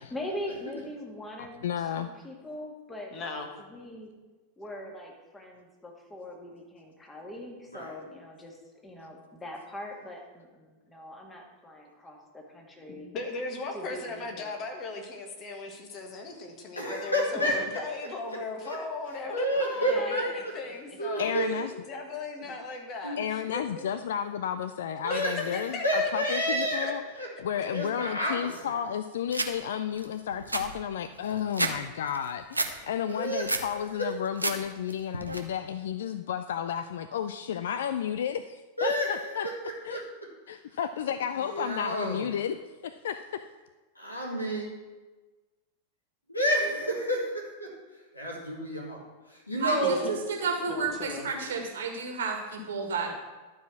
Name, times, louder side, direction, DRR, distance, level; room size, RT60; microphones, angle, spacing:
voice 1, 0.0-3.1 3.6-4.1 4.6-13.1 13.7-14.5 17.4-17.6 19.8-21.4, left 1 dB, 10° left, 0 dB, 1.9 m, -42 dB
voice 2, 1.6-2.1 21.2-21.7 23.2-27.0 27.4-39.5 39.8-40.0 40.5-42.6 42.8-43.4, left 9 dB, 60° left, 11 dB, 0.3 m, -32 dB
voice 3, 3.1-3.5 12.9-21.3 21.9-23.6 25.1-25.2 25.5-26.4 49.8-50.1 50.4-51.3, left 3 dB, 35° left, 3 dB, 1.5 m, -37 dB
voice 4, 16.7-17.6 18.3-18.8 19.3-20.5 21.0-21.6 23.0-23.2 25.0-26.9 27.2-27.3 27.7-28.8 33.1-33.7 34.0-34.1 38.8-40.0 40.5-40.6 41.4-42.3 44.0-44.7 46.3-50.0, right 1 dB, 85° left, -2 dB, 2.1 m, -30 dB
sound 1, 29.3-29.5 30.0-30.1 30.3-31.8 32.1-32.7 33.1-33.7 34.1-34.6 34.9-35.4, right 2 dB, 85° right, 0.7 m, -30 dB
voice 5, 49.6-53.1, right 4 dB, 65° right, 2 dB, 1.7 m, -31 dB
11.5 x 4.9 x 6.0 m, 1.2 s
figure-of-eight pair, 90°, 0 cm